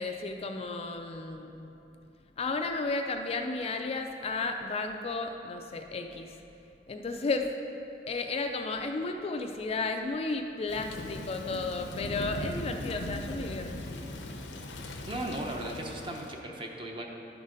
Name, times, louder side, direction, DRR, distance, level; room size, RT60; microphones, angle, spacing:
voice 1, 0.0-1.7 2.4-6.4 6.9-7.6 8.1-13.9, left 3 dB, 35° left, 5 dB, 0.3 m, -33 dB
Thunder / Rain, 10.7-16.4, left 1 dB, 80° left, 0.6 m, -39 dB
voice 2, 15.1-17.1, right 1 dB, 30° right, 1 dB, 0.8 m, -36 dB
11.0 x 4.0 x 5.1 m, 3.0 s
head